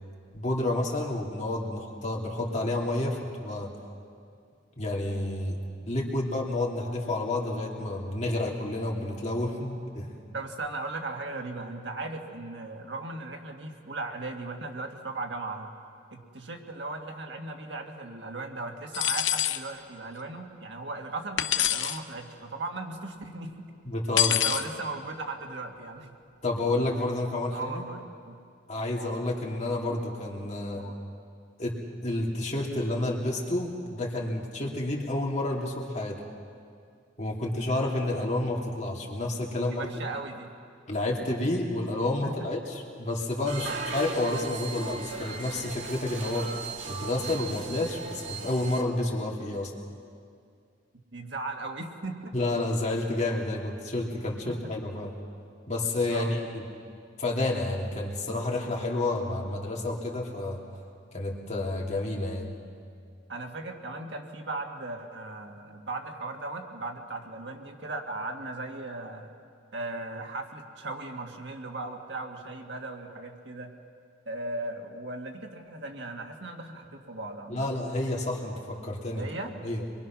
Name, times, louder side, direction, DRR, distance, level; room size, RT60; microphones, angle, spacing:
voice 1, 0.3-3.7 4.8-5.6 5.8-10.1 23.8-24.4 26.4-27.8 28.7-30.8 31.6-31.8 32.0-36.2 37.2-40.1 40.9-46.5 46.9-49.7 52.3-55.1 55.7-56.6 57.2-60.6 61.1-62.5 77.5-79.3 79.6-79.8, left 2 dB, 40° left, -2 dB, 2.9 m, -30 dB
voice 2, 10.3-15.7 16.1-23.7 24.3-26.2 27.5-28.4 30.7-31.0 39.5-40.5 42.2-42.5 51.1-52.3 54.4-54.7 56.1-56.4 63.3-69.3 69.7-73.7 74.3-77.7 79.1-79.5, right 2 dB, 65° right, 2 dB, 2.0 m, -37 dB
sound 1, 18.9-19.6 21.4-22.0 24.2-24.7, left 10 dB, 80° left, 0.9 m, -25 dB
sound 2, 43.5-48.8, right 4 dB, 85° right, 2.3 m, -37 dB
25.0 x 23.0 x 6.1 m, 2.3 s
head